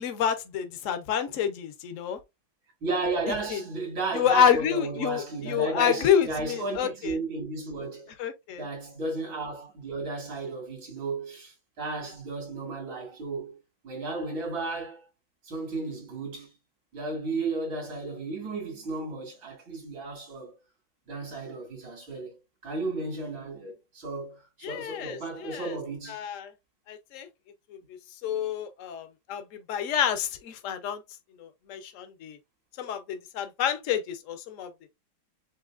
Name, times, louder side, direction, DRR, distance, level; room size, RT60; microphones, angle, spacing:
voice 1, 0.0-2.2 3.3-3.6 4.1-7.2 8.2-8.6 24.6-25.7 26.1-26.5 26.9-27.3 28.2-31.0 31.4-32.4 32.8-34.7, left 8 dB, 55° left, 0.9 m, -28 dB
voice 2, 2.8-8.1 8.6-13.6 13.8-15.1 15.4-16.5 16.9-20.5 21.1-22.4 22.6-26.2, right 3 dB, 80° right, 3.5 m, -34 dB
7.2 x 2.8 x 2.5 m
omnidirectional pair, 2.1 m